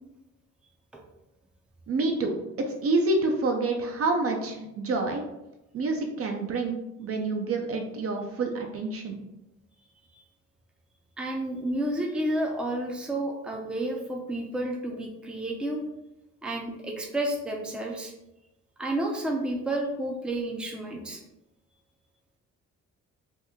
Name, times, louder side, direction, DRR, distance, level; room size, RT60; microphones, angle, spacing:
voice 1, 1.9-2.3 2.7-5.2 5.7-9.2, right 3 dB, 50° right, 3 dB, 0.6 m, -28 dB
voice 2, 11.2-15.8 16.4-18.1 18.8-21.2, right 1 dB, 5° right, 0 dB, 0.5 m, -31 dB
3.0 x 2.1 x 3.5 m, 0.91 s
cardioid pair, 90°, 30 cm